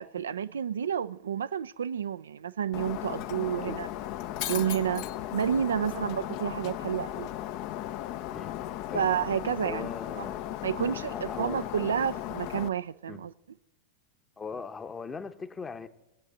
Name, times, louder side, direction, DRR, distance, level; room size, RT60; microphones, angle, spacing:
voice 1, 0.0-3.9 4.5-5.0 5.3-7.3 8.9-9.9 10.2-10.3 10.6-13.3, right 8 dB, 65° right, 0.4 m, -30 dB
Shatter, 2.7-12.7, left 13 dB, 45° left, 0.6 m, -36 dB
voice 2, 9.6-10.4 10.8-11.6 13.1-13.3 14.4-15.9, left 5 dB, 15° left, 0.9 m, -40 dB
19.0 x 8.3 x 7.7 m
figure-of-eight pair, 90°, 0 cm